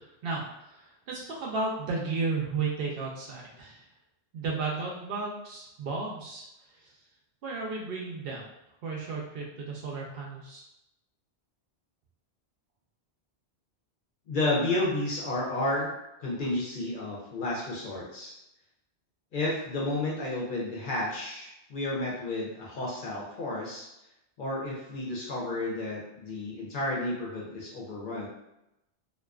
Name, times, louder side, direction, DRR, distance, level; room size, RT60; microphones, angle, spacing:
voice 1, 0.0-3.9 4.3-6.4 6.7-6.9 7.4-8.5 8.8-10.7, right 4 dB, 65° right, -2 dB, 0.7 m, -34 dB
voice 2, 14.3-15.9 16.2-18.3 19.3-23.9 24.4-28.3, left 2 dB, 55° left, -4 dB, 0.7 m, -31 dB
2.4 x 2.3 x 2.3 m, 0.88 s
omnidirectional pair, 1.1 m